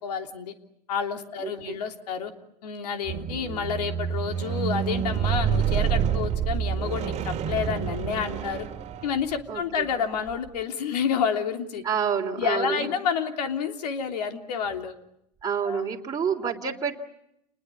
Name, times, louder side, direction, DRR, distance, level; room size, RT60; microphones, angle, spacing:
voice 1, 0.0-0.5 0.9-2.3 2.6-8.7 9.0-11.8 12.4-14.9 15.6-15.8, left 7 dB, 70° left, 6 dB, 3.3 m, -29 dB
voice 2, 1.4-1.8 9.5-9.9 11.8-12.9 15.4-17.0, right 6 dB, 15° right, 0 dB, 3.2 m, -28 dB
Squeak, 3.1-9.4 10.2-10.3, right 8 dB, 35° right, 2.2 m, -28 dB
30.0 x 20.5 x 8.5 m, 0.78 s
hypercardioid pair, 100°, 21 cm